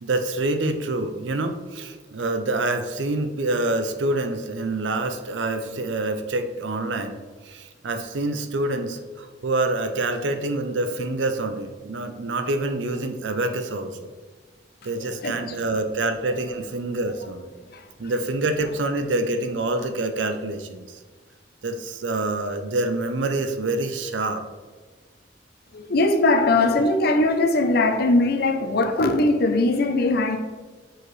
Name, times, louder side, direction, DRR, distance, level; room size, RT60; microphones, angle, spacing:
voice 1, 0.0-14.1 14.8-17.5 18.0-21.0 21.6-24.4, right 2 dB, 85° right, 0.6 m, -26 dB
voice 2, 14.9-15.6 17.7-17.9 25.7-30.4, left 2 dB, 60° left, 0.6 m, -21 dB
6.4 x 4.7 x 3.2 m
head